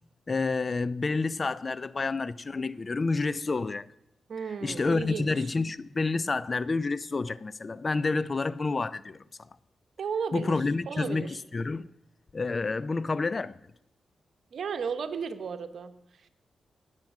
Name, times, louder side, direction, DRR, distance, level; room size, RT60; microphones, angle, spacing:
voice 1, 0.3-3.9 4.6-9.5 10.3-11.9 12.3-13.5, left 3 dB, 40° left, 0.5 m, -29 dB
voice 2, 4.3-5.5 10.0-11.4 14.5-16.3, right 6 dB, 70° right, 1.1 m, -35 dB
18.0 x 7.5 x 6.1 m
cardioid pair, 60°, 0 cm